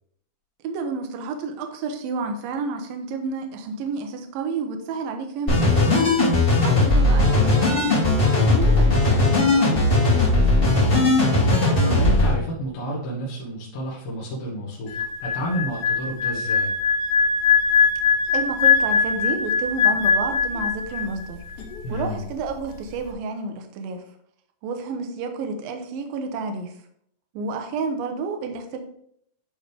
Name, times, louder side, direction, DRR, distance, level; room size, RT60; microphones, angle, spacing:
voice 1, 0.6-6.1 6.6-10.8 18.3-21.4 21.9-24.1 24.6-26.8 27.3-28.8, right 4 dB, 75° right, 5 dB, 2.3 m, -31 dB
sound 1, 5.5-12.3, left 2 dB, 20° left, 1.8 m, -18 dB
voice 2, 6.5-6.9 11.6-16.7 21.8-22.2, right 1 dB, 65° left, -6 dB, 2.9 m, -30 dB
sound 2, 14.9-21.3 21.5-21.8, left 6 dB, 90° left, 3.5 m, -21 dB
10.5 x 3.9 x 3.4 m, 0.68 s
omnidirectional pair, 4.9 m